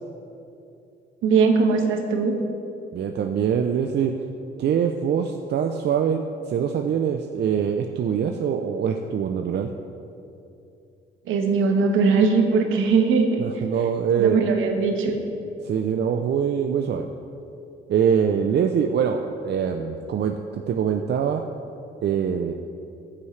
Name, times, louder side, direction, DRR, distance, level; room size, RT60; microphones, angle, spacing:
voice 1, 1.2-2.4 11.3-13.4 14.2-15.1, right 4 dB, 90° right, 3 dB, 1.3 m, -20 dB
voice 2, 2.9-4.2 4.6-9.7 13.4-14.4 15.6-17.1 17.9-21.4 22.0-22.5, right 7 dB, 60° right, 4 dB, 0.6 m, -23 dB
14.5 x 8.5 x 3.3 m, 2.7 s
cardioid pair, 90°, 20 cm